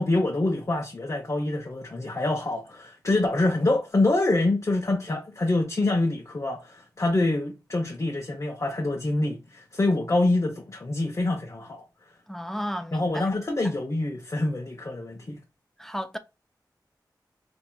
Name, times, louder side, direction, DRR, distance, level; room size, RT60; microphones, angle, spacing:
voice 1, 0.0-11.8 12.9-15.4, left 2 dB, 45° left, 0.7 m, -26 dB
voice 2, 12.3-13.1 15.8-16.2, equal, 5° left, 0.4 m, -33 dB
4.4 x 2.7 x 2.3 m
cardioid pair, 50°, 8 cm